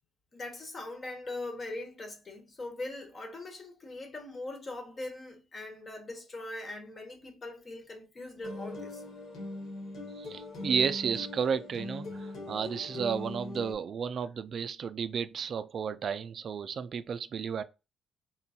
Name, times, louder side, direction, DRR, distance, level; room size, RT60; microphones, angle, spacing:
voice 1, 0.3-9.0, left 2 dB, 40° left, 1.2 m, -41 dB
sound 1, 8.4-13.7, left 2 dB, 75° left, 1.8 m, -41 dB
voice 2, 10.2-17.6, right 6 dB, 55° right, 0.3 m, -32 dB
3.8 x 2.2 x 4.2 m
cardioid pair, 90°, 0 cm